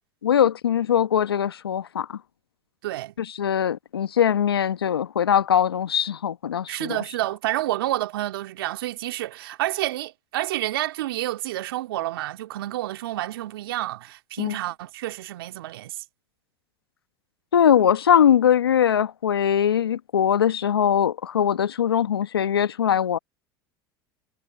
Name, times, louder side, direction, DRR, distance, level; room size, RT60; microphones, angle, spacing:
voice 1, 0.2-2.2 3.2-7.0 14.4-14.6 17.5-23.2, left 9 dB, 90° left, 1.3 m, -21 dB
voice 2, 2.8-3.1 6.7-16.0, right 15 dB, 75° right, 2.5 m, -29 dB
hypercardioid pair, 80°, 12 cm